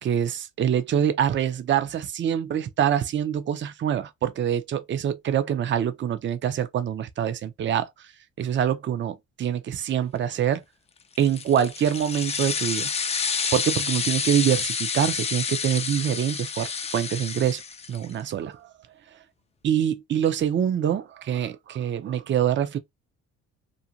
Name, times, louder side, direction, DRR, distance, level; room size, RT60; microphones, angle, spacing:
voice 1, 0.0-7.9 8.4-10.6 11.2-12.9 13.5-17.6 17.9-18.7 19.6-22.8, right 9 dB, 40° right, 0.4 m, -25 dB
sound 1, 11.1-18.1, left 5 dB, 20° left, 0.3 m, -29 dB
2.5 x 2.1 x 2.7 m
cardioid pair, 90°, 30 cm